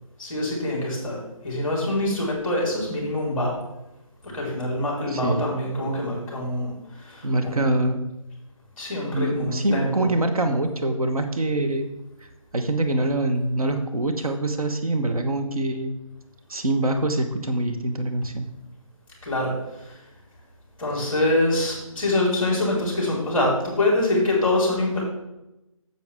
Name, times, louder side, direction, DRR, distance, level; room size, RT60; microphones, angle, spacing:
voice 1, 0.2-3.6 4.2-7.7 8.8-10.1 19.2-20.0 20.8-25.0, left 1 dB, 5° left, -3 dB, 3.8 m, -25 dB
voice 2, 5.1-5.5 7.2-8.0 9.1-11.9 12.5-16.0 16.5-18.4, right 1 dB, 90° right, 6 dB, 1.3 m, -24 dB
9.9 x 7.8 x 3.6 m, 0.94 s
figure-of-eight pair, 165°, 18 cm